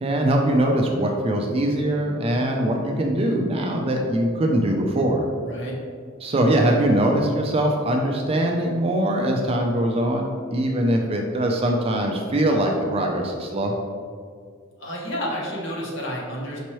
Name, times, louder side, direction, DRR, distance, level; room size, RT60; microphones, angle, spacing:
voice 1, 0.0-5.2 6.2-13.7, right 1 dB, 25° right, 2 dB, 0.3 m, -22 dB
voice 2, 5.4-5.7 14.8-16.6, equal, 55° left, -4 dB, 1.0 m, -30 dB
5.4 x 2.9 x 3.0 m, 2.1 s
head